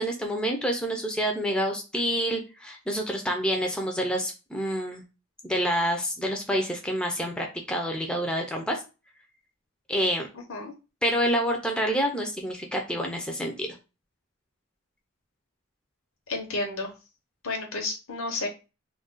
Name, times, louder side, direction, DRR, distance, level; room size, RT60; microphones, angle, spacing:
voice 1, 0.0-5.0 5.4-8.8 9.9-10.3 11.0-13.7, equal, 5° left, 2 dB, 0.4 m, -27 dB
voice 2, 16.3-16.9 17.4-18.5, left 2 dB, 85° left, 2 dB, 0.8 m, -31 dB
2.4 x 2.2 x 3.6 m, 0.30 s
head